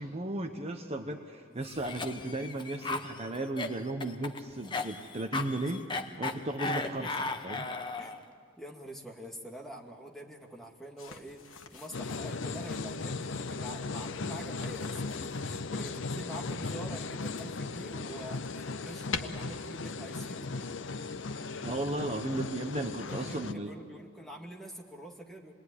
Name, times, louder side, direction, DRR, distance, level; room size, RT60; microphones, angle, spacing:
voice 1, 0.0-5.8 6.2-7.1 7.4-7.7 21.6-23.7, right 1 dB, 30° right, 4 dB, 1.1 m, -35 dB
Cough, 1.6-8.2, left 3 dB, 25° left, 1.1 m, -36 dB
voice 2, 1.8-2.2 2.8-3.0 5.6-5.7 6.6-7.1 8.0-8.1 8.6-20.7 23.1-25.5, right 1 dB, ahead, -1 dB, 2.2 m, -46 dB
sound 1, 11.0-12.9 14.3-15.7 16.4-17.7 18.1-19.2, left 5 dB, 85° left, 1.5 m, -44 dB
sound 2, 11.9-23.5, left 3 dB, 65° left, 0.7 m, -37 dB
27.5 x 20.5 x 9.9 m, 2.2 s
head